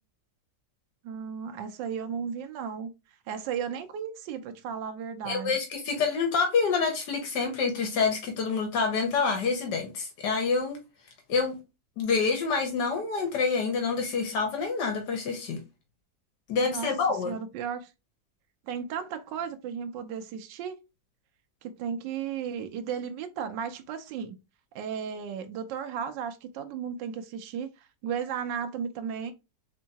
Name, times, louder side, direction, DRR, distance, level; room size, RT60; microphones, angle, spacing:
voice 1, 1.0-2.9 3.3-5.6 16.7-16.9 17.3-17.9 18.7-20.8 21.6-24.3 24.7-27.7 28.0-29.3, right 7 dB, 85° right, 1.3 m, -34 dB
voice 2, 5.3-10.8 11.3-11.6 12.0-15.6 16.5-17.3, left 5 dB, 70° left, 1.5 m, -27 dB
3.7 x 3.5 x 2.8 m
omnidirectional pair, 1.9 m